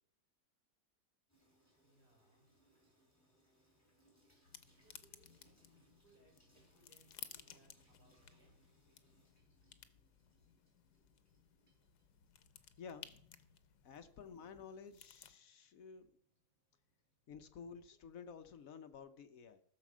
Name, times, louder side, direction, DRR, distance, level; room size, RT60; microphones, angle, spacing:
Water tap faucet / Sink (filling or washing), 1.3-18.8, right 1 dB, 10° left, 4.3 m, -76 dB
voice 1, 1.8-2.6 4.5-8.6, right 1 dB, 75° right, 0 dB, 4.6 m, -72 dB
sound 1, 4.4-15.4, left 10 dB, 80° left, 1.4 m, -58 dB
voice 2, 12.8-13.2 13.8-16.1 17.3-19.6, left 6 dB, 65° left, 10 dB, 1.1 m, -53 dB
15.0 x 6.9 x 6.1 m, 0.66 s
omnidirectional pair, 1.7 m